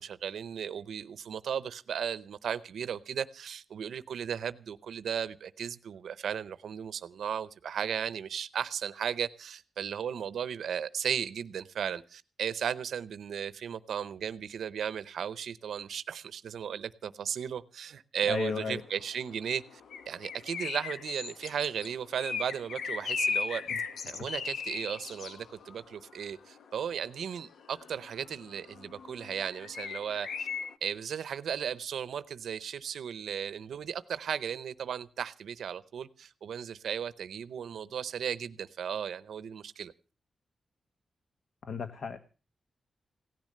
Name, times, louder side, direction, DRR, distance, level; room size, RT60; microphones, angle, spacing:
voice 1, 0.0-19.8 20.1-23.6 24.1-30.5 30.8-39.9, right 8 dB, 85° right, 0.7 m, -35 dB
voice 2, 18.3-18.8 41.6-42.2, left 5 dB, 60° left, 1.2 m, -33 dB
sound 1, 18.4-30.7, left 5 dB, 85° left, 1.0 m, -38 dB
17.0 x 10.5 x 6.5 m
wide cardioid pair, 155°, 0 cm